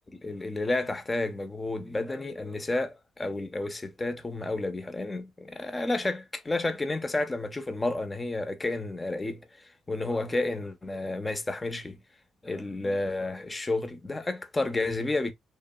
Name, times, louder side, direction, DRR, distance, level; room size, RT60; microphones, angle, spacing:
voice 1, 0.1-9.4 9.9-12.0 12.4-15.3, left 2 dB, 20° left, 0.5 m, -31 dB
2.9 x 2.3 x 2.2 m
cardioid pair, 90°, 0 cm